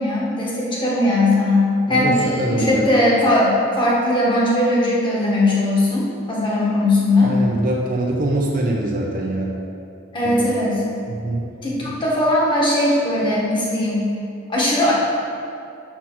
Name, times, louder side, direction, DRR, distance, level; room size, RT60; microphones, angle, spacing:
voice 1, 0.0-7.3 10.1-10.8 11.6-14.0 14.5-14.9, left 1 dB, 25° left, -6 dB, 1.5 m, -19 dB
voice 2, 1.9-2.9 7.2-9.5 10.2-10.5 11.1-11.4, right 1 dB, 40° right, -1 dB, 0.8 m, -23 dB
6.1 x 5.4 x 6.1 m, 2.5 s
head